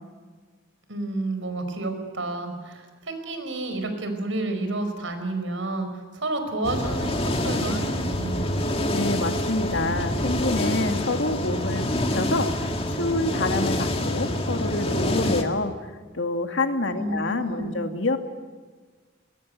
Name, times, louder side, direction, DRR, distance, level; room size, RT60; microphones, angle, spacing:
voice 1, 0.9-8.7 16.9-17.8, right 2 dB, 85° right, 7 dB, 5.2 m, -30 dB
sound 1, 6.6-15.4, left 1 dB, 30° left, 2.2 m, -26 dB
voice 2, 8.9-18.2, left 2 dB, 70° left, 5 dB, 2.4 m, -27 dB
23.0 x 21.5 x 9.6 m, 1.4 s
head